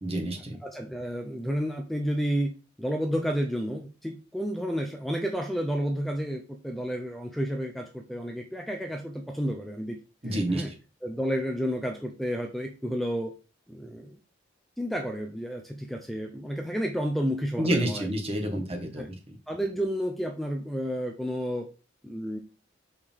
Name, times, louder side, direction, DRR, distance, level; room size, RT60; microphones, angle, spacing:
voice 1, 0.0-0.6 10.2-10.7 17.6-19.1, right 1 dB, 30° right, 4 dB, 1.6 m, -28 dB
voice 2, 0.6-2.5 2.8-10.0 10.3-10.7 11.0-13.3 13.7-14.2 14.8-18.1 18.6-18.7 19.0-19.1 19.5-21.7 22.0-22.4, equal, ahead, 3 dB, 0.6 m, -31 dB
6.5 x 4.9 x 3.7 m, 0.32 s
head